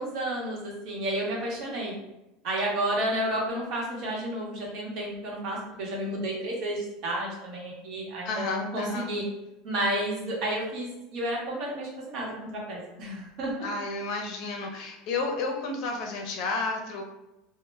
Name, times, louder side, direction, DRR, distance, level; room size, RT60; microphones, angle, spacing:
voice 1, 0.0-2.0 2.4-9.2 9.6-12.3 12.7-13.7, right 1 dB, 60° right, -3 dB, 0.9 m, -31 dB
voice 2, 8.3-9.1 13.6-17.0, left 3 dB, 60° left, 2 dB, 0.5 m, -31 dB
2.1 x 2.0 x 3.2 m, 0.93 s
supercardioid pair, 120°, 0 cm